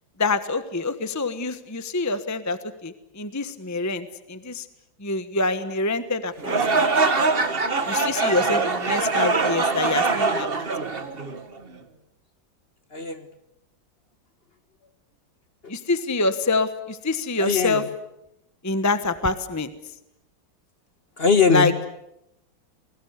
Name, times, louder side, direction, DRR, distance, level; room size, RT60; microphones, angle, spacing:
voice 1, 0.2-4.6 5.0-6.8 7.9-10.9 15.7-17.8 18.6-19.7 21.5-21.7, left 3 dB, 10° left, 11 dB, 1.0 m, -26 dB
sound 1, 6.4-11.6, right 3 dB, 30° right, 1.6 m, -23 dB
voice 2, 12.9-13.3 15.6-15.7 17.4-17.9 21.2-21.9, left 5 dB, 35° left, 10 dB, 1.4 m, -21 dB
30.0 x 21.5 x 8.2 m, 0.82 s
omnidirectional pair, 2.0 m